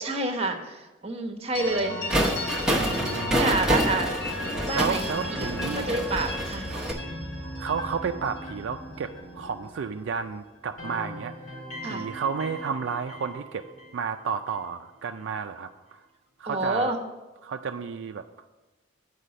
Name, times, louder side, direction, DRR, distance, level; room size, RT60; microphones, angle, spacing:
voice 1, 0.0-2.0 2.2-2.8 3.4-4.1 4.6-5.0 5.4-5.5 5.7-6.7 11.8-12.0 16.5-17.0, right 2 dB, 30° right, 4 dB, 1.0 m, -28 dB
sound 1, 1.5-10.3 10.6-14.7, left 1 dB, 75° left, 2.9 m, -36 dB
sound 2, 1.7-9.7, equal, 50° left, 1.0 m, -45 dB
sound 3, 2.1-6.9, equal, 5° right, 0.8 m, -28 dB
voice 2, 2.7-3.7 4.7-5.9 7.6-11.3 11.8-13.6 13.9-16.0 16.4-16.9 17.4-18.2, right 6 dB, 70° right, 6 dB, 0.4 m, -32 dB
8.3 x 4.9 x 7.5 m, 1.2 s
head